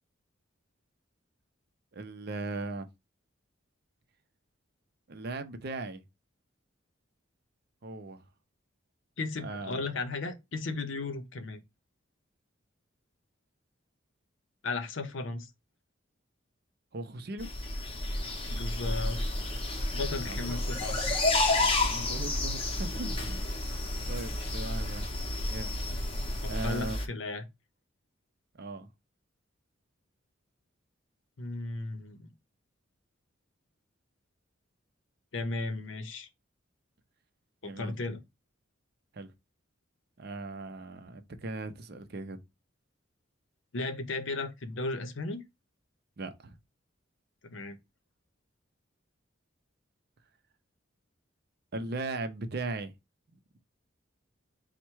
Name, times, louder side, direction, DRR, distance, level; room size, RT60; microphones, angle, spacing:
voice 1, 1.9-2.9 5.1-6.0 7.8-8.2 9.4-9.8 16.9-17.5 20.2-20.7 21.8-23.6 24.1-25.1 25.5-25.7 26.5-27.0 28.5-28.9 37.6-37.9 39.1-39.3 40.2-42.4 46.2-46.6 51.7-52.9, right 2 dB, 50° right, 0.5 m, -38 dB
voice 2, 9.2-11.6 14.6-15.5 18.5-19.2 19.9-21.1 26.4-27.4 31.4-32.3 35.3-36.3 37.6-38.2 43.7-45.4 47.5-47.8, left 3 dB, 70° left, 0.7 m, -35 dB
sound 1, 17.4-27.1, left 2 dB, 30° left, 0.7 m, -31 dB
4.4 x 2.1 x 4.5 m
head